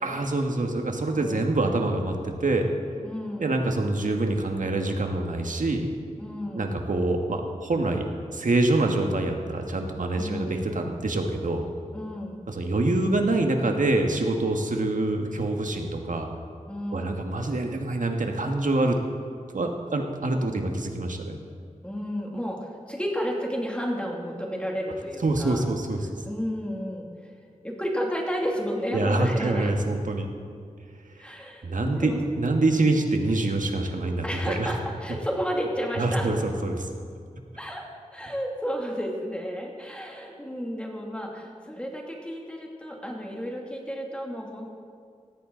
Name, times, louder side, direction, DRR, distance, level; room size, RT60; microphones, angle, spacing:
voice 1, 0.0-2.7 3.4-5.8 6.5-8.1 8.3-11.6 12.5-16.3 16.9-19.0 19.5-21.4 25.2-26.1 28.9-30.3 31.6-34.7 36.0-36.9, right 2 dB, 75° right, 3 dB, 1.7 m, -25 dB
voice 2, 3.0-3.5 6.2-6.7 10.1-10.6 11.9-12.4 16.7-17.2 21.8-25.7 26.2-27.1 27.6-29.7 31.2-32.2 34.2-36.3 37.6-37.9 38.1-44.7, equal, 10° left, -1 dB, 2.5 m, -32 dB
18.0 x 14.5 x 3.9 m, 2.2 s
wide cardioid pair, 70°, 14 cm